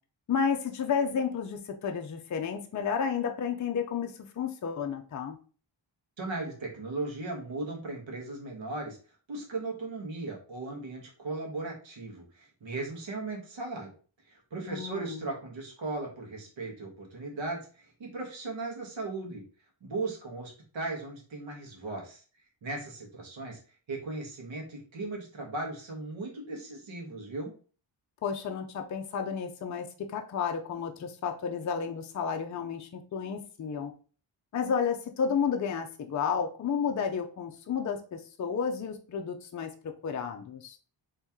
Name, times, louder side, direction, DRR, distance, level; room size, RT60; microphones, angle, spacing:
voice 1, 0.3-5.4 14.7-15.3 28.2-33.9 34.5-40.8, left 6 dB, 40° left, 4 dB, 0.4 m, -32 dB
voice 2, 6.2-9.0 9.3-13.9 14.2-19.4 19.8-22.2 22.6-23.6 23.9-27.5, right 2 dB, 70° right, 0 dB, 1.4 m, -37 dB
3.1 x 2.9 x 3.5 m, 0.39 s
wide cardioid pair, 155°, 47 cm